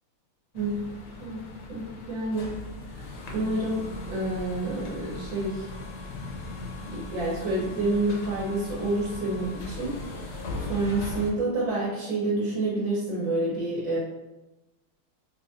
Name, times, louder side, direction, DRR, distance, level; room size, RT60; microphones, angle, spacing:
sound 1, 0.5-11.3, left 2 dB, 70° left, 1.0 m, -38 dB
voice 1, 1.7-2.5 3.3-3.8 4.1-5.6 6.8-9.9 10.7-14.0, right 2 dB, 65° right, -6 dB, 1.7 m, -28 dB
4.0 x 2.6 x 2.5 m, 0.98 s
omnidirectional pair, 2.3 m